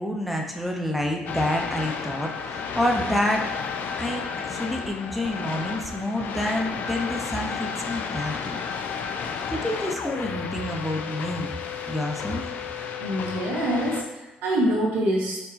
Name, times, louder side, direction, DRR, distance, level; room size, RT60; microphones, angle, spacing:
voice 1, 0.0-3.4 4.0-8.6 9.5-11.6 11.9-12.5, left 1 dB, ahead, 0 dB, 0.7 m, -28 dB
sound 1, 1.3-14.0, left 6 dB, 70° left, 0.3 m, -32 dB
voice 2, 13.0-15.4, right 1 dB, 85° right, -4 dB, 0.9 m, -25 dB
4.5 x 2.1 x 3.9 m, 1.1 s
supercardioid pair, 65°, 3 cm